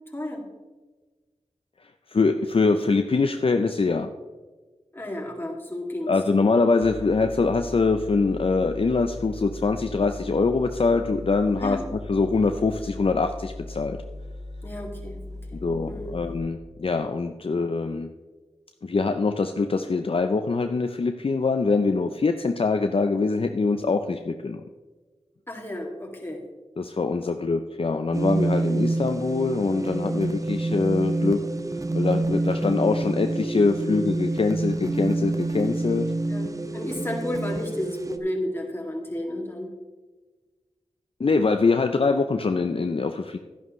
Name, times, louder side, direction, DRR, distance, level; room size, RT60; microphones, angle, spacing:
voice 1, 0.1-0.4 4.9-6.1 11.6-11.9 14.6-15.2 15.5-15.6 15.9-16.2 25.5-26.4 27.2-27.3 36.3-39.7, left 1 dB, 20° left, -1 dB, 2.4 m, -32 dB
voice 2, 2.1-4.1 6.1-14.0 15.5-18.1 18.8-24.6 26.8-31.4 31.9-36.1 41.2-43.4, left 4 dB, 50° left, 7 dB, 0.5 m, -24 dB
sound 1, 6.8-16.4, left 1 dB, 70° right, 2.2 m, -39 dB
sound 2, 28.1-38.2, right 2 dB, 30° right, 0.8 m, -27 dB
11.5 x 11.0 x 3.2 m, 1.3 s
wide cardioid pair, 50°, 12 cm